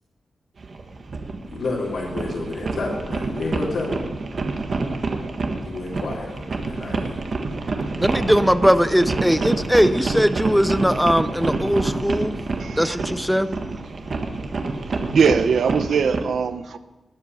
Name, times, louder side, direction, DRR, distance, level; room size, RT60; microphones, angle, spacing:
sound 1, 0.6-16.2, right 3 dB, 45° right, 1.6 m, -28 dB
voice 1, 1.5-4.0 5.7-7.2, left 3 dB, 70° left, -6 dB, 3.6 m, -30 dB
voice 2, 7.9-12.4 12.8-13.5, equal, ahead, 13 dB, 0.5 m, -19 dB
voice 3, 12.6-13.0 15.1-16.8, right 6 dB, 70° right, 12 dB, 0.8 m, -21 dB
19.5 x 8.3 x 6.8 m, 1.2 s
wide cardioid pair, 155°, 0 cm